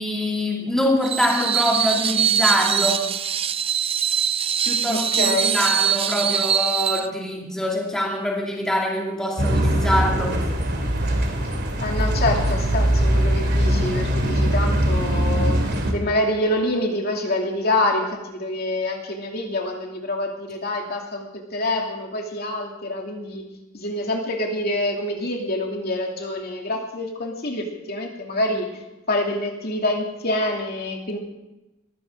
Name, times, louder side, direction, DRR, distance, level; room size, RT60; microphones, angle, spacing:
voice 1, 0.0-3.0 4.7-10.4, left 1 dB, 5° left, -2 dB, 2.6 m, -24 dB
Screech, 1.0-7.1, right 8 dB, 30° right, 0.4 m, -22 dB
voice 2, 4.9-5.5 11.4-23.4 23.7-28.7 29.1-31.2, left 1 dB, 50° left, 1 dB, 2.7 m, -26 dB
sound 1, 9.4-15.9, right 1 dB, 50° right, 2.8 m, -21 dB
21.5 x 16.0 x 3.8 m, 0.97 s
head